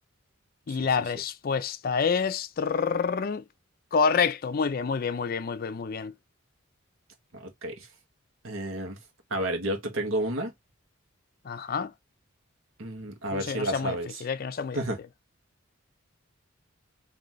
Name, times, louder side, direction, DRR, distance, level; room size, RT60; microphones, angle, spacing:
voice 1, 0.7-3.4 3.9-6.1 11.4-11.9 13.3-14.8, left 5 dB, 45° left, 0.4 m, -28 dB
voice 2, 7.3-7.9 8.4-9.0 9.3-10.5 12.8-14.2 14.7-15.0, right 1 dB, 85° right, 1.5 m, -31 dB
4.0 x 3.0 x 3.0 m
head